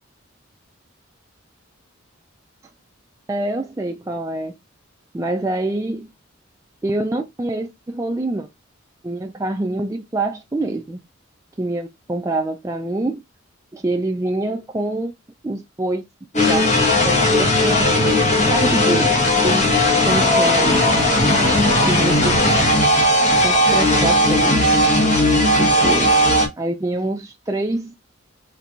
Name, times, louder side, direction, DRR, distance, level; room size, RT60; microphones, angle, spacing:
voice 1, 3.3-4.5 5.1-6.1 6.8-8.5 9.0-11.0 11.6-13.2 13.7-15.1 15.4-16.0 16.5-16.7 17.0-17.9 18.4-19.1 19.4-19.7 20.0-20.8 21.9-22.4 23.4-24.6 25.6-26.1 26.6-27.9, right 2 dB, 15° right, 0.3 m, -25 dB
sound 1, 16.3-26.5, left 1 dB, 35° left, 1.2 m, -16 dB
4.4 x 3.3 x 2.5 m
head